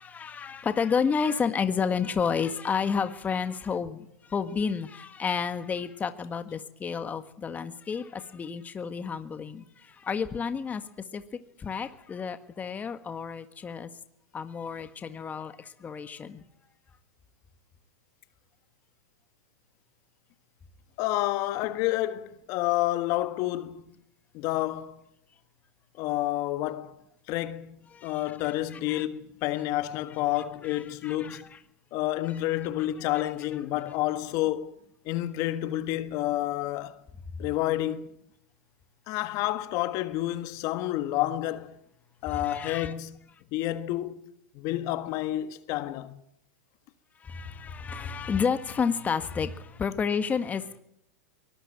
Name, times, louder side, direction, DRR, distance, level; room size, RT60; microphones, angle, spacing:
voice 1, 0.0-10.8 11.1-11.2 11.6-13.9 14.3-16.4 27.9-28.2 28.7-29.0 30.7-31.6 42.3-42.9 47.2-50.8, left 6 dB, 20° left, 1.7 m, -31 dB
voice 2, 21.0-23.9 24.3-25.0 26.0-27.0 27.3-27.8 28.0-31.5 31.9-34.8 35.0-37.0 37.4-38.1 39.1-41.8 42.2-43.2 43.5-44.2 44.5-46.2, left 15 dB, 45° left, 1.6 m, -29 dB
23.0 x 19.0 x 9.0 m
hypercardioid pair, 110°, 8 cm